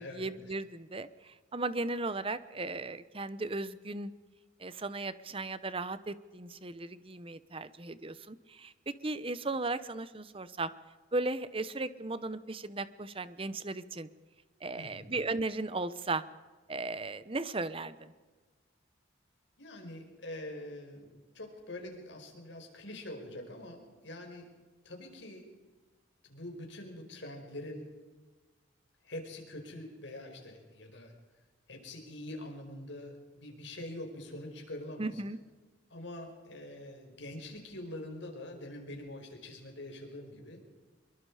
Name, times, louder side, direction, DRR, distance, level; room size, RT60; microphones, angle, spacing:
voice 1, 0.0-4.1 4.6-10.7 11.1-14.1 14.6-16.2 16.7-18.1 35.0-35.4, right 2 dB, 30° right, 14 dB, 0.9 m, -36 dB
voice 2, 14.7-15.1 19.6-24.5 24.8-25.5 26.2-27.9 29.0-31.1 31.7-35.2 35.9-40.6, left 1 dB, 70° left, 3 dB, 5.3 m, -44 dB
25.5 x 22.5 x 5.0 m, 1.3 s
head